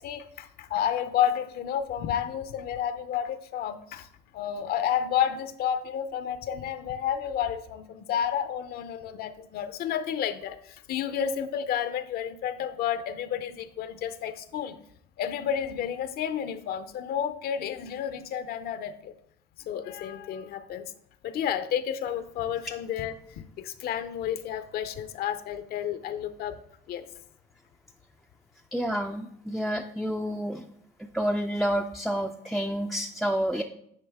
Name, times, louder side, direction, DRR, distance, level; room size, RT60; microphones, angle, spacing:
voice 1, 0.0-4.1 4.3-10.6 10.9-14.8 15.2-19.1 19.7-20.9 21.2-23.2 23.6-26.6 26.9-27.0, left 9 dB, 65° left, 12 dB, 0.5 m, -31 dB
voice 2, 28.7-30.7 31.1-33.6, equal, ahead, 4 dB, 0.3 m, -29 dB
9.6 x 4.0 x 3.5 m, 0.71 s
cardioid pair, 110°, 17 cm